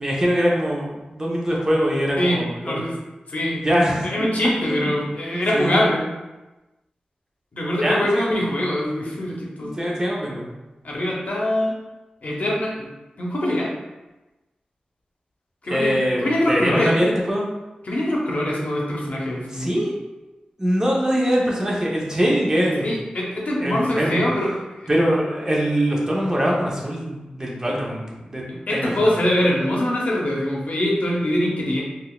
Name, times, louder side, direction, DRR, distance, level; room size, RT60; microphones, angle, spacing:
voice 1, 0.0-2.8 3.5-4.1 4.7-4.9 5.3-5.7 7.8-8.4 9.6-10.5 15.7-16.2 16.5-17.5 19.5-19.9 20.6-22.9 23.6-24.2 24.9-28.4 28.7-28.9, equal, 25° right, -3 dB, 0.8 m, -22 dB
voice 2, 2.2-3.0 3.3-3.6 4.0-6.0 7.5-9.8 10.8-11.7 12.2-12.9 13.2-13.7 15.6-17.0 17.8-19.7 22.8-24.9 28.5-31.8, left 1 dB, 65° left, -3 dB, 0.7 m, -23 dB
3.8 x 2.4 x 2.3 m, 1.1 s
wide cardioid pair, 70°, 3 cm